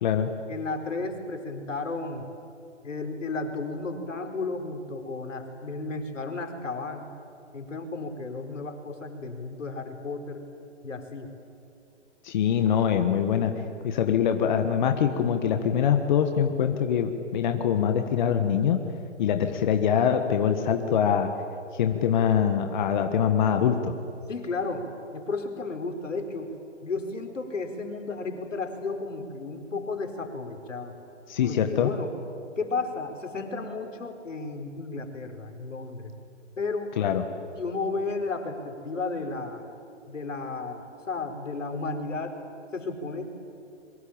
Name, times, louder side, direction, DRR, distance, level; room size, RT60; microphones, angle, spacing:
voice 1, 0.5-2.3 2.8-7.1 7.5-10.4 10.8-11.3 24.3-26.5 26.8-30.9 31.4-32.1 32.6-36.1 36.6-36.9 37.6-39.7 40.1-42.4 42.7-43.3, left 3 dB, 85° left, 5 dB, 4.6 m, -33 dB
voice 2, 12.2-13.5 13.8-18.8 19.2-21.3 21.7-23.9 31.3-31.9 37.0-37.2, left 8 dB, 40° left, 6 dB, 1.6 m, -24 dB
26.5 x 23.5 x 8.8 m, 2.6 s
hypercardioid pair, 150°, 37 cm